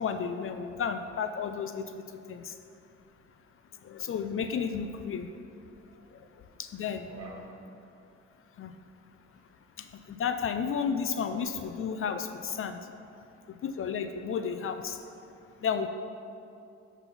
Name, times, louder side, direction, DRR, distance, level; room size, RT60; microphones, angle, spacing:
voice 1, 0.0-2.0 2.3-2.5 3.9-5.3 6.6-7.1 8.6-8.7 10.2-12.8 13.6-15.0 15.6-15.9, left 6 dB, 45° left, 8 dB, 0.4 m, -32 dB
voice 2, 5.9-6.3 6.7-7.6 9.3-9.4, right 3 dB, 50° right, -1 dB, 1.7 m, -49 dB
11.0 x 4.1 x 4.2 m, 2.6 s
cardioid pair, 90°, 30 cm